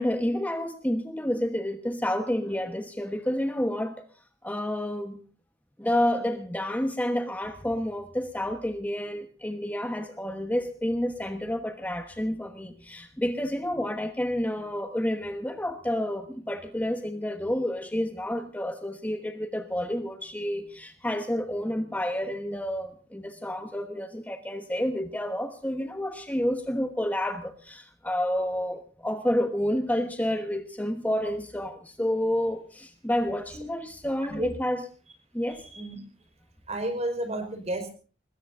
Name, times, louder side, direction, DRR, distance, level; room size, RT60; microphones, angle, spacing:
voice 1, 0.0-4.1 4.4-5.2 5.8-34.9 35.3-35.6, left 1 dB, 10° left, 1.2 m, -29 dB
voice 2, 34.2-34.5 35.5-36.0 36.7-37.9, right 1 dB, 40° right, 4.8 m, -32 dB
25.0 x 20.5 x 2.6 m
head